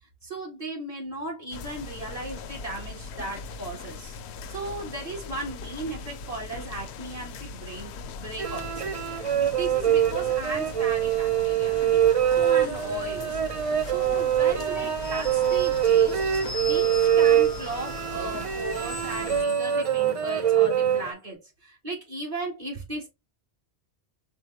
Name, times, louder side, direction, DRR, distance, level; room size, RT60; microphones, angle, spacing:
voice 1, 0.2-4.2 4.5-12.0 12.3-13.4 13.8-23.1, right 2 dB, 35° right, 2.2 m, -36 dB
sound 1, 1.5-19.4, left 5 dB, 75° left, 0.8 m, -40 dB
sound 2, 8.4-21.1, right 10 dB, 65° right, 0.3 m, -24 dB
sound 3, 12.0-13.5 14.4-21.0, left 2 dB, 25° left, 0.7 m, -41 dB
5.1 x 2.2 x 4.6 m
omnidirectional pair, 1.1 m